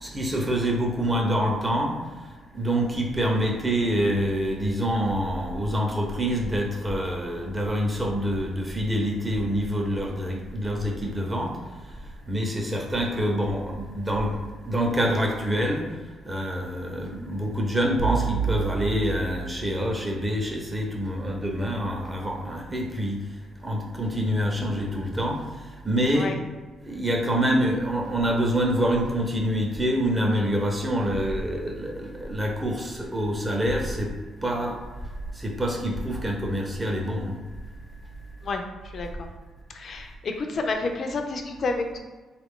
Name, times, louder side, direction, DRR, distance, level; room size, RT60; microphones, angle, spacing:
voice 1, 0.0-1.9 2.5-11.5 12.3-14.4 14.6-15.9 16.3-23.2 23.6-25.4 25.8-26.3 26.8-34.1 34.4-34.8 35.4-37.4, equal, 20° right, 0 dB, 0.7 m, -26 dB
sound 1, 18.0-20.1, right 7 dB, 75° right, 0.4 m, -30 dB
voice 2, 38.9-39.3 39.7-42.0, left 3 dB, 50° left, 4 dB, 0.5 m, -29 dB
3.3 x 2.4 x 3.6 m, 1.3 s
cardioid pair, 90°, 0 cm